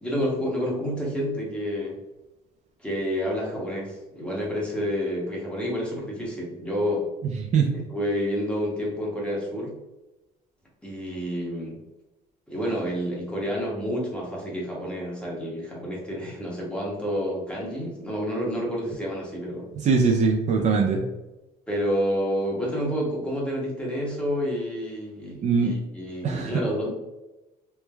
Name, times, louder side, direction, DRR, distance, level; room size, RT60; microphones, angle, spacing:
voice 1, 0.0-2.0 2.8-7.0 7.9-9.7 10.8-11.8 12.5-19.7 20.6-20.7 21.7-26.9, equal, 5° left, -4 dB, 0.9 m, -29 dB
voice 2, 19.8-21.0 25.4-25.7 26.2-26.5, right 5 dB, 45° right, 0 dB, 0.4 m, -21 dB
3.1 x 2.1 x 2.2 m, 1.0 s
cardioid pair, 110°, 17 cm